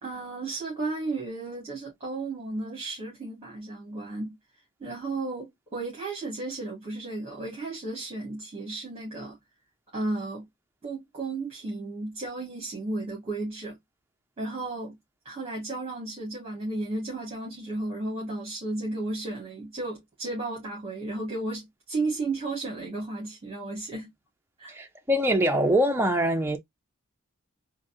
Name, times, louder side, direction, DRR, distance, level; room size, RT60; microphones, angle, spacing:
voice 1, 0.0-4.3 4.8-9.4 9.9-10.4 10.8-13.8 14.4-15.0 15.2-24.1 24.6-24.8, right 2 dB, 30° right, 1.6 m, -34 dB
voice 2, 24.7-26.6, equal, 10° right, 0.5 m, -23 dB
3.9 x 2.7 x 2.7 m
head